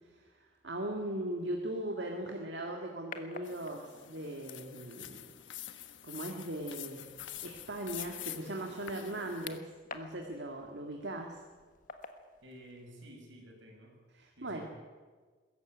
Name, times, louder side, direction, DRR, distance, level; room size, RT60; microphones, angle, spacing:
voice 1, 0.6-5.3 6.0-7.1 7.4-11.4 14.1-14.6, right 1 dB, 65° right, 1 dB, 2.1 m, -39 dB
sound 1, 2.1-13.1, left 4 dB, 45° left, 1.5 m, -54 dB
sound 2, 3.4-9.6, left 12 dB, 85° left, 1.2 m, -46 dB
voice 2, 12.4-14.0 14.4-14.6, right 1 dB, 85° right, 2 dB, 6.0 m, -52 dB
21.5 x 14.0 x 9.2 m, 1.4 s
head